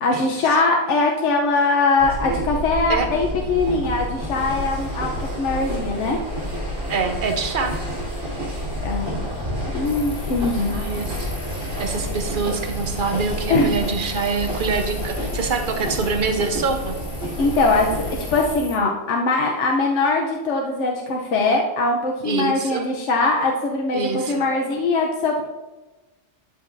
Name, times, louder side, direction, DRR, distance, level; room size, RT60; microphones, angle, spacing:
voice 1, 0.0-5.1 5.4-6.2 8.8-9.2 9.7-10.7 13.5-13.8 17.4-25.4, left 3 dB, 80° left, 0 dB, 1.1 m, -21 dB
sound 1, 2.0-18.5, equal, 85° right, 3.2 m, -29 dB
voice 2, 6.9-7.8 10.7-11.2 11.8-17.0 22.2-22.8 23.9-24.4, right 4 dB, 50° right, 5 dB, 1.0 m, -25 dB
sound 2, 9.8-18.8, left 3 dB, 30° left, 0.9 m, -39 dB
12.0 x 5.5 x 2.6 m, 1.1 s
omnidirectional pair, 1.2 m